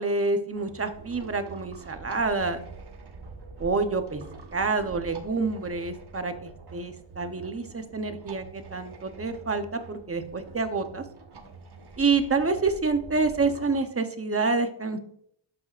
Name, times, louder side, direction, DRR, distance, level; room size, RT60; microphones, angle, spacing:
voice 1, 0.0-2.6 3.6-4.2 4.5-11.0 12.0-15.0, right 4 dB, 30° right, 7 dB, 0.9 m, -27 dB
sound 1, 0.5-13.8, right 4 dB, 55° right, 1.3 m, -45 dB
11.5 x 8.7 x 2.5 m, 0.68 s
wide cardioid pair, 125°, 48 cm